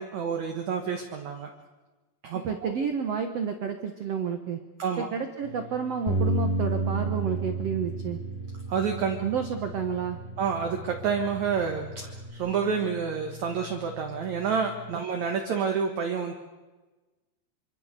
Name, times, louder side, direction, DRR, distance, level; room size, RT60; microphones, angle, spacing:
voice 1, 0.0-1.5 2.2-2.7 4.8-5.1 8.7-9.2 10.4-16.3, right 6 dB, 55° right, 3 dB, 2.2 m, -29 dB
voice 2, 2.4-4.6 5.1-8.2 9.2-10.2, right 6 dB, 85° right, 6 dB, 1.3 m, -30 dB
sound 1, 5.4-15.0, left 4 dB, 20° left, 1.7 m, -45 dB
Bass guitar, 6.1-12.3, right 2 dB, 50° left, 2.6 m, -32 dB
26.0 x 25.0 x 6.8 m, 1.2 s
omnidirectional pair, 5.0 m